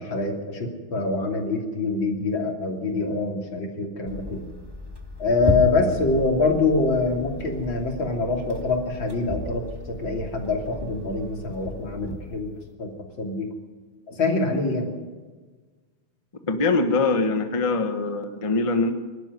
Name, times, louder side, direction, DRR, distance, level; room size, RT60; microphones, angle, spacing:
voice 1, 0.0-4.4 5.2-12.5 12.8-12.9 13.2-13.5 14.1-14.9, left 3 dB, 70° left, 2 dB, 3.7 m, -25 dB
sound 1, 4.0-12.7, left 1 dB, 10° right, 2.2 m, -34 dB
voice 2, 16.4-18.9, left 3 dB, 20° left, 6 dB, 1.1 m, -23 dB
24.5 x 12.5 x 9.6 m, 1.4 s
omnidirectional pair, 2.2 m